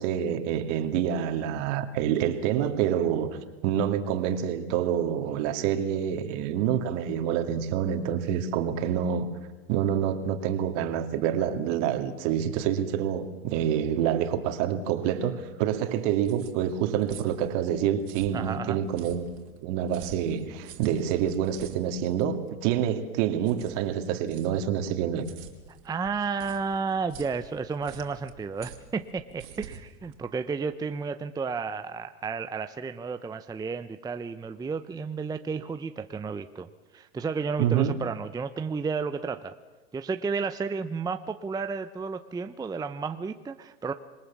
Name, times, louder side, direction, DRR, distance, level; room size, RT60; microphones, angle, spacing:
voice 1, 0.0-3.3 3.6-9.3 9.7-19.3 19.6-25.3 37.6-37.9, right 9 dB, 55° right, 2.5 m, -27 dB
sound 1, 15.9-31.0, right 8 dB, 75° right, 3.2 m, -48 dB
voice 2, 18.3-18.8 25.8-39.5 39.9-43.9, right 5 dB, 10° right, 0.7 m, -32 dB
26.5 x 21.5 x 7.3 m
hypercardioid pair, 115°, 43 cm